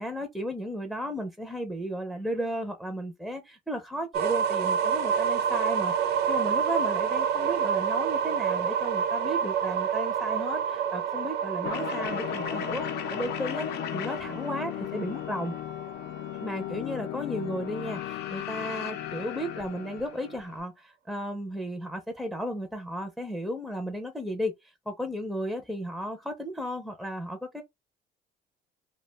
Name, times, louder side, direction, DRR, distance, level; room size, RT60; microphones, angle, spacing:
voice 1, 0.0-15.5 16.4-27.6, equal, ahead, 0.5 m, -34 dB
sound 1, 4.1-15.9, right 7 dB, 70° right, 0.4 m, -28 dB
sound 2, 11.6-20.6, left 11 dB, 80° left, 0.5 m, -35 dB
2.3 x 2.2 x 3.2 m
cardioid pair, 110°, 17 cm